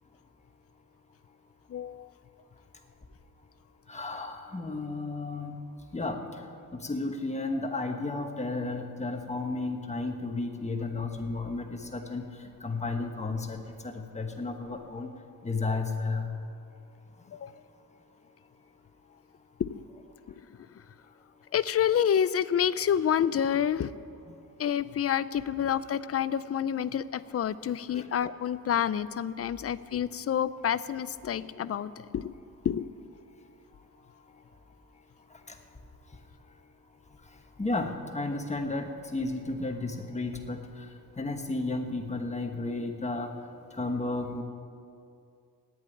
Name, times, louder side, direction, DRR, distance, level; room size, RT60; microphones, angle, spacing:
voice 1, 1.7-2.1 17.3-17.5 19.6-19.8 21.5-23.9 24.6-32.3 32.6-32.9, left 9 dB, 40° left, 15 dB, 0.4 m, -28 dB
voice 2, 3.9-5.6 5.9-6.3 6.7-12.2 12.6-15.1 15.4-16.3 24.3-24.4 27.9-28.1 35.5-35.6 37.6-40.6 41.2-43.3 43.8-44.4, left 3 dB, 20° left, 4 dB, 1.2 m, -33 dB
14.5 x 10.5 x 9.1 m, 2.5 s
wide cardioid pair, 160°, 37 cm